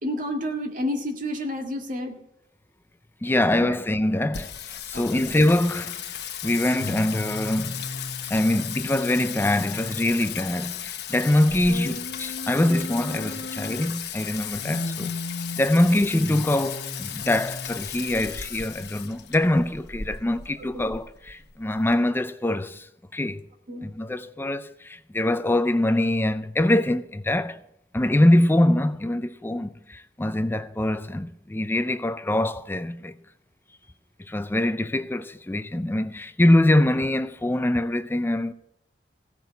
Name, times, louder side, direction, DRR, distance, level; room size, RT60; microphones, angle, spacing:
voice 1, 0.0-2.2 3.3-3.7 4.9-5.3 20.7-20.9 23.7-23.9, equal, 50° right, 2.0 m, -31 dB
voice 2, 3.2-6.0 6.4-7.8 8.3-15.1 15.6-22.9 23.1-23.4 23.8-27.6 27.9-33.1 34.3-38.5, left 1 dB, 10° left, 0.4 m, -23 dB
Singing, 4.3-21.9, left 6 dB, 65° left, 1.1 m, -34 dB
16.5 x 6.1 x 8.1 m
head